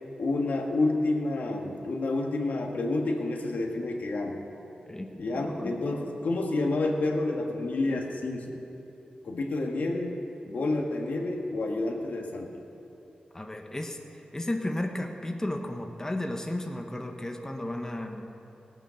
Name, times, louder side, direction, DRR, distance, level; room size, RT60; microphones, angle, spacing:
voice 1, 0.2-4.4 5.2-8.6 9.2-12.5, left 2 dB, 75° left, 1 dB, 1.6 m, -29 dB
voice 2, 5.3-5.8 13.3-14.0 14.3-18.3, left 1 dB, 20° left, 3 dB, 1.3 m, -33 dB
17.0 x 9.2 x 6.4 m, 2.9 s
cardioid pair, 60°, 3 cm